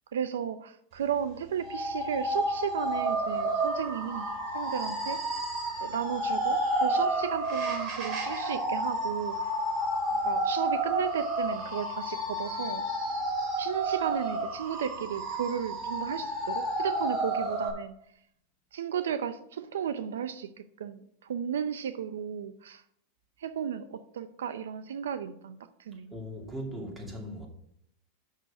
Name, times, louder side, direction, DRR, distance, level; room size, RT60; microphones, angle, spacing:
voice 1, 0.1-4.3 4.5-5.2 5.8-9.5 10.1-12.8 13.6-17.9 18.7-20.5 20.8-21.0 21.3-22.8 23.4-26.1, right 8 dB, 90° right, 0.6 m, -34 dB
sound 1, 1.6-17.7, right 1 dB, 50° right, 3.5 m, -31 dB
voice 2, 26.1-27.5, equal, 15° right, 2.6 m, -38 dB
6.5 x 6.3 x 6.7 m
supercardioid pair, 125°, 0 cm